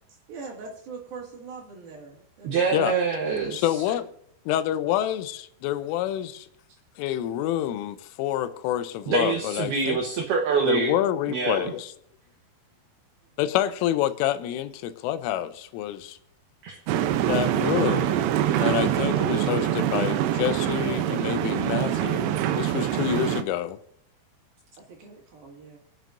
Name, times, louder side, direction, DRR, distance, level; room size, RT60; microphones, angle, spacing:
voice 1, 0.3-2.9 6.7-6.8 24.8-25.8, right 4 dB, 55° right, 3.4 m, -42 dB
voice 2, 2.4-3.8 9.1-10.9 11.3-11.7 16.6-16.8, right 5 dB, 75° right, 2.4 m, -25 dB
voice 3, 3.5-4.1 4.5-6.5 7.0-10.0 10.7-11.9 13.4-16.2 17.3-18.3 18.6-23.8, left 12 dB, 85° left, 3.2 m, -27 dB
sound 1, 16.9-23.4, right 11 dB, 90° right, 2.4 m, -24 dB
26.0 x 9.1 x 2.6 m
omnidirectional pair, 5.8 m